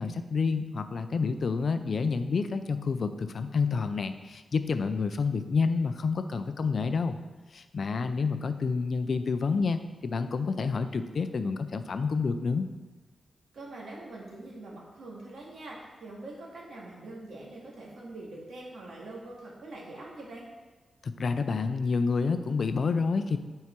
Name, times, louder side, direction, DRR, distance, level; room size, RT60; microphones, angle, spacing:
voice 1, 0.0-7.2 7.5-12.7 21.0-23.4, left 4 dB, 50° left, 9 dB, 0.4 m, -29 dB
voice 2, 13.5-20.5, right 2 dB, 80° right, -4 dB, 2.0 m, -44 dB
8.4 x 4.7 x 4.4 m, 1.3 s
wide cardioid pair, 170°, 0 cm